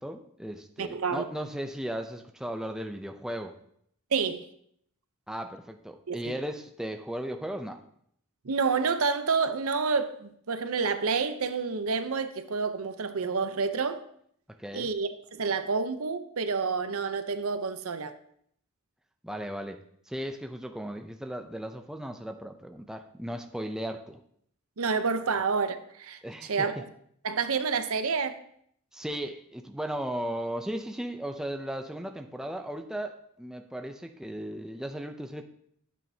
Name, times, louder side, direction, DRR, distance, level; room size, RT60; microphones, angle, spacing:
voice 1, 0.0-3.6 5.3-7.8 14.6-14.9 19.2-19.8 20.1-24.2 26.2-26.7 28.9-35.5, right 1 dB, 5° right, 0.4 m, -36 dB
voice 2, 0.8-1.2 4.1-4.5 6.1-6.3 8.4-14.0 14.7-18.2 24.8-26.8 27.2-28.4, right 5 dB, 70° right, 0.7 m, -29 dB
12.5 x 8.6 x 2.8 m
head